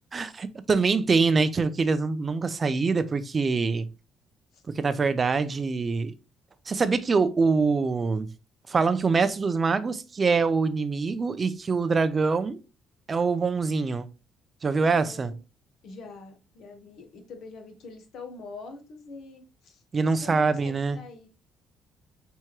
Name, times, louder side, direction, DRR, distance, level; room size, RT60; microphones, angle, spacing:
voice 1, 0.1-3.9 4.7-6.1 6.7-8.3 8.7-12.6 13.1-14.1 14.6-15.3 19.9-21.0, right 4 dB, 30° right, 0.4 m, -24 dB
voice 2, 14.7-15.4 15.8-21.3, left 3 dB, 65° left, 1.2 m, -44 dB
4.5 x 3.5 x 2.9 m
cardioid pair, 120°, 0 cm